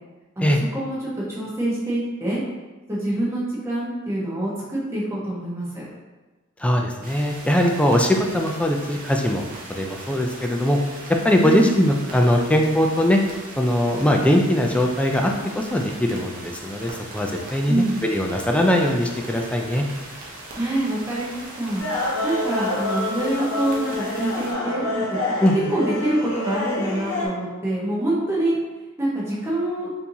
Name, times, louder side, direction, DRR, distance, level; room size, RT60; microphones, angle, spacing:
voice 1, 0.4-2.4 2.9-5.8 11.4-11.7 17.7-18.0 20.6-21.8 22.2-25.2 25.7-28.6 29.0-29.9, right 1 dB, 15° right, -7 dB, 1.0 m, -25 dB
voice 2, 6.6-9.4 9.7-10.8 11.2-13.2 13.6-19.8 25.4-25.5, left 1 dB, 5° left, 2 dB, 0.3 m, -21 dB
sound 1, 7.0-24.5, right 2 dB, 45° right, 0.8 m, -40 dB
sound 2, 21.8-27.3, left 2 dB, 85° left, 0.9 m, -27 dB
4.5 x 2.7 x 2.7 m, 1.2 s
head